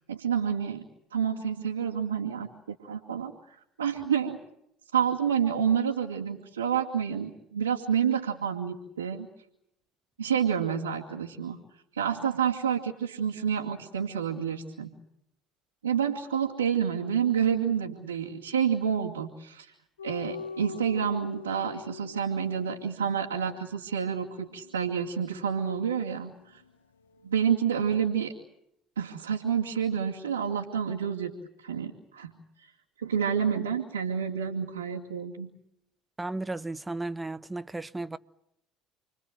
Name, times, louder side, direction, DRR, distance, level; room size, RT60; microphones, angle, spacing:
voice 1, 0.1-0.8 1.1-3.3 3.8-4.4 4.9-9.3 10.2-11.6 11.9-14.9 15.8-19.7 20.0-26.6 27.2-28.3 29.0-31.3 31.6-32.3 33.0-35.5, right 7 dB, 85° right, 2.4 m, -29 dB
sound 1, 20.0-26.8 27.0-27.3, left 7 dB, 80° left, 1.4 m, -44 dB
voice 2, 36.2-38.2, right 2 dB, 15° right, 1.2 m, -34 dB
30.0 x 23.0 x 7.9 m
figure-of-eight pair, 60°, 0 cm